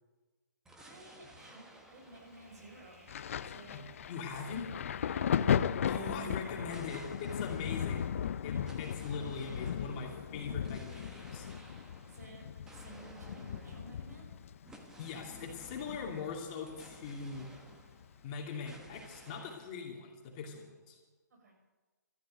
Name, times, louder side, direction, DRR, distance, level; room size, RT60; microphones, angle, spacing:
sound 1, 0.6-5.4 6.6-18.3 18.6-19.7, right 1 dB, 5° right, 1.3 m, -57 dB
voice 1, 0.7-3.0 3.4-3.8 4.3-4.4 5.0-5.6 12.0-14.2 21.3-21.5, right 2 dB, 65° right, 2 dB, 6.5 m, -54 dB
Thunder, 3.1-16.4 16.7-18.0 18.9-19.0, left 8 dB, 45° left, 0.6 m, -36 dB
voice 2, 4.1-4.7 5.9-8.1 8.4-11.5 15.0-17.5 18.2-21.0, left 5 dB, 25° left, 0 dB, 2.5 m, -41 dB
13.0 x 12.0 x 9.0 m, 1.3 s
hypercardioid pair, 160°, 10 cm